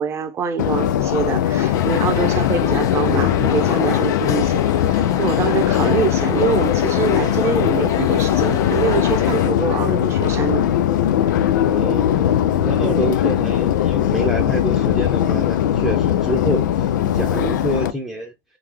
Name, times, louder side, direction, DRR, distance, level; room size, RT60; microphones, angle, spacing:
voice 1, 0.0-10.7 11.2-11.4 12.8-13.1 17.3-17.6, right 7 dB, 30° right, 0.8 m, -25 dB
Subway metro underground, 0.6-17.9, left 11 dB, 90° left, 0.4 m, -19 dB
sound 1, 1.7-9.5, left 9 dB, 35° left, 0.5 m, -28 dB
voice 2, 11.6-18.3, equal, 5° left, 0.8 m, -27 dB
3.8 x 2.3 x 3.1 m
supercardioid pair, 130°, 10 cm